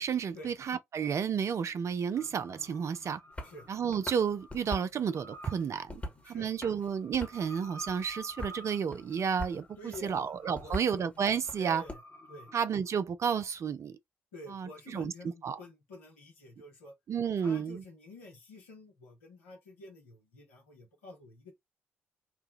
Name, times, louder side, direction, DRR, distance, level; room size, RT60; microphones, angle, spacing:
voice 1, 0.0-3.2 3.7-6.0 6.3-11.8 12.5-14.0 14.5-15.1 15.4-15.6 17.1-17.8, right 7 dB, 45° right, 0.5 m, -31 dB
sound 1, 2.1-12.6, right 1 dB, 40° left, 1.2 m, -52 dB
sound 2, 3.3-3.6 3.9-4.9 5.3-6.3 6.6-7.5 7.9-8.6 8.9-9.6 9.9-11.9, left 1 dB, 20° left, 1.2 m, -42 dB
voice 2, 6.0-6.5 9.8-10.3 10.6-11.0 11.6-12.0 12.3-12.5 14.3-16.9 17.4-21.5, left 1 dB, 80° left, 1.0 m, -49 dB
3.3 x 2.2 x 3.1 m
figure-of-eight pair, 40°, 7 cm